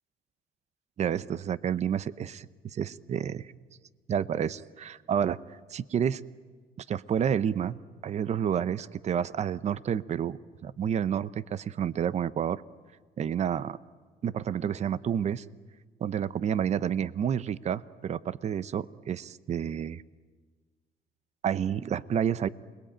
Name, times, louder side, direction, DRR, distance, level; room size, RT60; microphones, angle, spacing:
voice 1, 1.0-3.5 4.1-5.4 5.7-6.2 6.9-12.6 13.2-13.8 14.2-15.4 16.0-20.0 21.4-22.5, right 8 dB, 40° right, 17 dB, 0.7 m, -29 dB
28.5 x 21.5 x 8.9 m, 1.4 s
cardioid pair, 110°, 17 cm